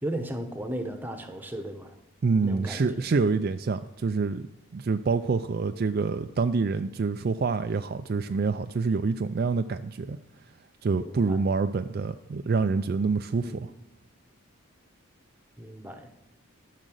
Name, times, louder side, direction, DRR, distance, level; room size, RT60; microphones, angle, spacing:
voice 1, 0.0-1.9 2.4-3.0 11.0-11.4 13.4-13.6 15.6-16.1, right 1 dB, 10° right, 6 dB, 1.0 m, -35 dB
voice 2, 2.2-4.5 4.7-10.2 10.8-13.7, right 4 dB, 45° right, 8 dB, 0.3 m, -26 dB
12.5 x 6.6 x 6.4 m, 0.96 s
head